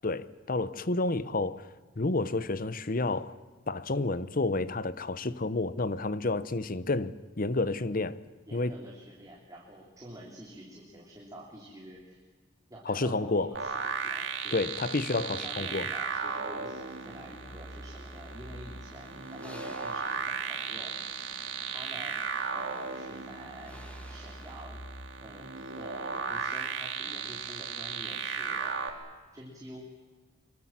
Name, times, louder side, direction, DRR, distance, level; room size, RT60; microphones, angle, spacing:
voice 1, 0.0-1.7 2.0-3.4 3.7-8.2 8.5-8.7 12.9-13.5 14.5-15.9, left 2 dB, 45° left, 0.9 m, -30 dB
voice 2, 8.5-12.2 12.7-21.0 21.7-22.2 22.5-23.8 24.1-24.8 25.2-28.7 29.3-29.9, right 1 dB, 15° right, 3.5 m, -48 dB
sound 1, 13.5-28.9, right 5 dB, 65° right, 2.7 m, -36 dB
sound 2, 16.8-24.7, equal, 5° left, 2.2 m, -54 dB
25.5 x 23.0 x 7.5 m
head